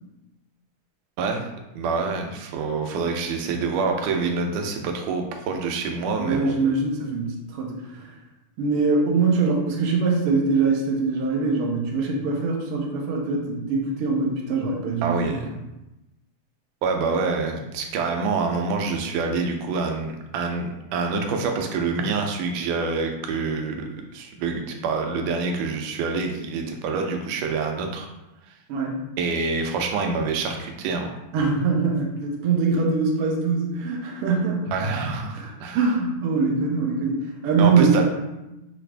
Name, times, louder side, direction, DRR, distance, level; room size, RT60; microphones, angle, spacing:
voice 1, 1.8-6.6 15.0-15.5 16.8-23.8 24.1-28.1 29.2-31.1 34.7-35.8 37.6-38.0, right 4 dB, 90° right, 3 dB, 2.2 m, -26 dB
voice 2, 6.2-8.1 8.6-15.4 28.7-29.0 31.3-34.7 35.3-38.0, right 4 dB, 75° right, -1 dB, 1.4 m, -23 dB
6.1 x 2.4 x 3.3 m, 0.96 s
omnidirectional pair, 3.5 m